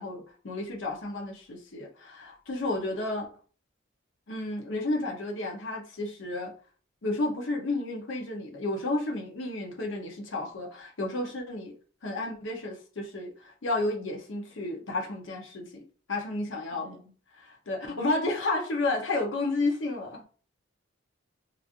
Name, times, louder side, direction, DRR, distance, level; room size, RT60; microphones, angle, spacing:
voice 1, 0.0-3.3 4.3-6.5 7.0-11.7 12.0-15.8 16.1-17.0 17.4-20.2, left 2 dB, 75° left, 0.8 m, -32 dB
voice 2, 2.7-3.1 16.7-17.1 17.9-18.1, right 1 dB, 40° right, 0.7 m, -51 dB
3.0 x 2.4 x 2.5 m
head